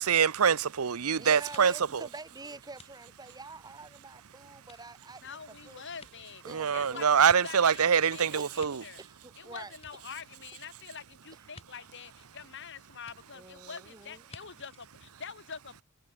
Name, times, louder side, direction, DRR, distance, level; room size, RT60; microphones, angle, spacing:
voice 1, 0.0-1.7 6.5-8.8, right 7 dB, 85° right, 0.7 m, -24 dB
voice 2, 1.2-5.4 5.7-5.8 6.4-7.0 8.4-9.7 13.3-14.2, right 3 dB, 20° right, 2.9 m, -46 dB
sound 1, 1.5-4.1 4.6-7.9 8.3-9.4 9.7-10.6 11.5-11.7 13.1-13.2 14.3-14.4 14.7-14.9, left 3 dB, 30° left, 6.1 m, -55 dB
voice 3, 5.2-9.0 9.4-15.8, left 6 dB, 55° left, 2.3 m, -45 dB
head